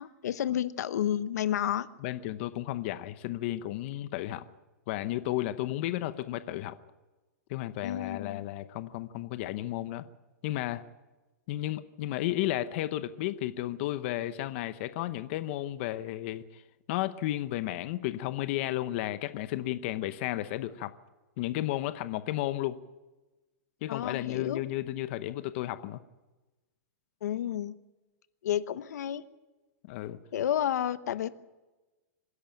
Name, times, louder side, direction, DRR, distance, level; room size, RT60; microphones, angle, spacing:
voice 1, 0.0-1.9 7.8-8.4 23.9-24.6 27.2-27.7 28.4-29.2 30.3-31.3, left 10 dB, 80° left, 13 dB, 1.0 m, -31 dB
voice 2, 2.0-4.4 4.9-6.7 7.5-10.1 10.4-10.8 11.5-16.6 16.9-20.9 21.4-22.8 23.8-26.0 29.8-30.2, left 14 dB, 45° left, 12 dB, 0.8 m, -33 dB
26.0 x 11.0 x 9.1 m, 1.1 s
supercardioid pair, 160°, 9 cm